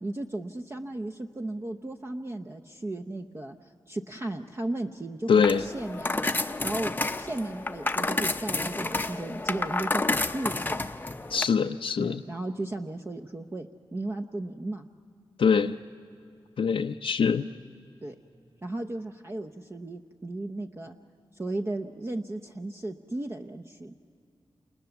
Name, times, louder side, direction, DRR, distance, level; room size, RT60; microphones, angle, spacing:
voice 1, 0.0-6.3 6.6-10.8 12.0-14.9 18.0-18.2 18.6-21.0 21.3-23.9, right 2 dB, 25° right, 5 dB, 0.8 m, -35 dB
voice 2, 5.3-5.6 11.3-12.2 15.4-15.8 16.6-17.5, left 6 dB, 75° left, 5 dB, 0.6 m, -23 dB
sound 1, 5.3-11.5, left 2 dB, 20° left, 0.7 m, -30 dB
28.5 x 28.5 x 7.1 m, 2.5 s
wide cardioid pair, 110°, 9 cm